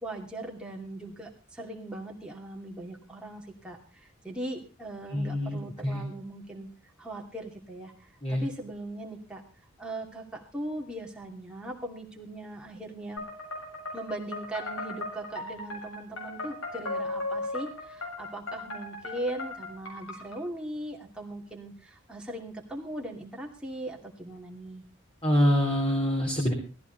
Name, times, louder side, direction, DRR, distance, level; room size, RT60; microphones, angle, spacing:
voice 1, 0.0-6.7 7.0-9.4 9.8-13.3 13.9-24.8, right 1 dB, 5° right, -1 dB, 2.5 m, -39 dB
voice 2, 5.1-6.0 8.2-8.5 25.2-26.5, equal, 25° left, -1 dB, 3.2 m, -25 dB
sound 1, 13.2-20.4, left 2 dB, 75° left, 7.4 m, -37 dB
16.5 x 14.5 x 4.0 m, 0.34 s
head